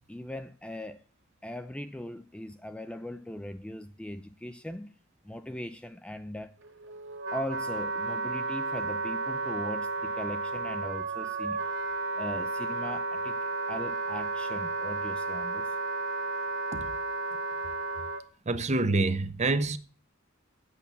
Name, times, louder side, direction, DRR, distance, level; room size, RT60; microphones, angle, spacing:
voice 1, 0.1-1.0 1.4-4.9 5.2-6.5 7.3-11.6 12.2-13.4 13.7-15.8, left 1 dB, 5° left, 0.4 m, -39 dB
Wind instrument woodwind instrument, 6.6-18.2, right 3 dB, 60° right, 1.1 m, -33 dB
voice 2, 18.5-19.8, right 2 dB, 35° right, 0.7 m, -26 dB
8.3 x 6.9 x 7.0 m
head